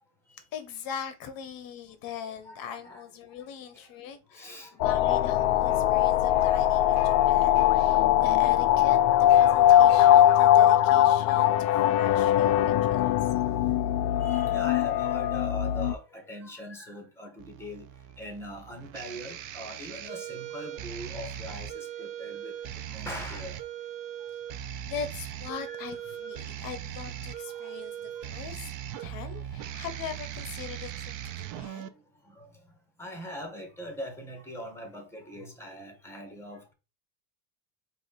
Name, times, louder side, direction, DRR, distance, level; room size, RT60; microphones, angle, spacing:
voice 1, 0.5-13.3 24.8-28.7 29.0-31.9, left 8 dB, 45° left, 0.8 m, -41 dB
voice 2, 2.4-3.0 3.7-4.1 4.3-4.8 6.7-6.8 9.2-9.3 12.6-13.3 14.0-17.9 18.2-23.6 25.6-26.4 27.5-27.7 28.6-28.7 29.2-29.7 31.5-32.0 32.3-32.5 33.0-36.7, equal, 5° left, 1.4 m, -42 dB
sound 1, 4.8-16.0, left 12 dB, 60° left, 0.5 m, -21 dB
sound 2, 17.4-31.9, right 11 dB, 40° right, 0.5 m, -39 dB
4.7 x 2.6 x 4.0 m
supercardioid pair, 115°, 49 cm